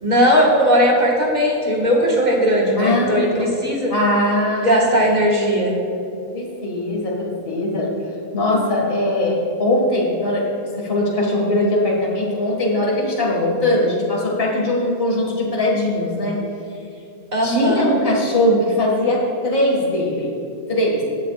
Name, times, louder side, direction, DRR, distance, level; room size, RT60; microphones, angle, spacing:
voice 1, 0.0-3.9 4.6-5.7 17.3-17.8, equal, 30° right, -3 dB, 1.8 m, -17 dB
voice 2, 2.8-3.5 3.9-4.8 5.9-6.0 6.3-7.9 8.3-16.4 17.4-20.3 20.7-21.0, left 1 dB, 40° left, -3 dB, 2.2 m, -20 dB
18.0 x 7.8 x 2.5 m, 2.6 s
omnidirectional pair, 1.6 m